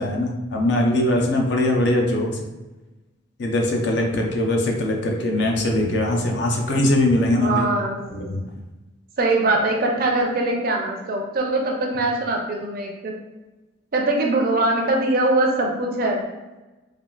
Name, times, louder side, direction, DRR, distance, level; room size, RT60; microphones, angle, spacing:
voice 1, 0.0-2.4 3.4-7.7 8.1-8.5, left 1 dB, 60° left, 1 dB, 0.5 m, -21 dB
voice 2, 7.3-8.0 9.2-13.1 13.9-16.3, right 2 dB, 50° right, 1 dB, 0.4 m, -22 dB
3.4 x 2.3 x 2.3 m, 1.1 s
head